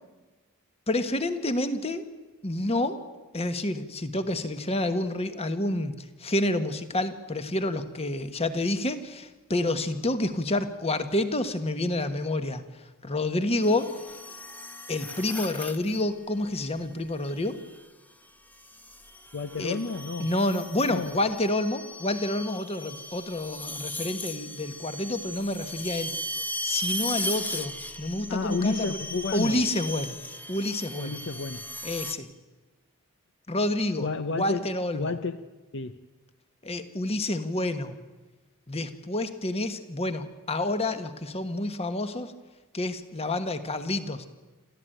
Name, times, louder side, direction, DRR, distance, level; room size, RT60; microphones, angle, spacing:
voice 1, 0.9-2.1 2.4-3.0 3.3-5.9 6.2-12.6 13.0-13.9 14.9-17.6 19.6-19.8 20.2-26.1 26.6-27.7 28.0-29.0 29.3-30.2 30.5-31.2 31.8-32.3 33.5-35.1 36.6-38.0 38.7-42.3 42.7-44.3, left 1 dB, 30° left, 10 dB, 1.4 m, -28 dB
sound 1, 13.6-16.0 17.4-17.8 18.6-32.1, left 1 dB, 10° left, 0.9 m, -37 dB
voice 2, 19.3-20.3 20.9-21.2 28.3-29.7 31.0-31.7 34.0-34.7 34.9-35.4 35.7-36.0, left 3 dB, 60° left, 11 dB, 0.8 m, -31 dB
27.5 x 14.0 x 9.1 m, 1.2 s
head